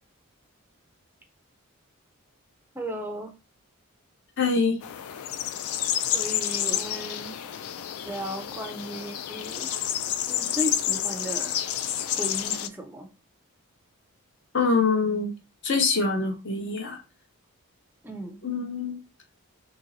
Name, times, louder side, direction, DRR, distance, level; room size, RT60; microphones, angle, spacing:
voice 1, 2.7-3.3 6.1-7.4 8.0-9.7 10.3-11.6 12.2-13.1 18.0-18.4, equal, 10° right, 4 dB, 0.4 m, -35 dB
voice 2, 4.4-4.8 14.5-15.3 15.6-17.0 18.4-19.0, left 4 dB, 55° left, 4 dB, 0.8 m, -24 dB
sound 1, 4.8-12.7, left 10 dB, 75° left, 0.3 m, -29 dB
2.9 x 2.7 x 3.9 m, 0.29 s
head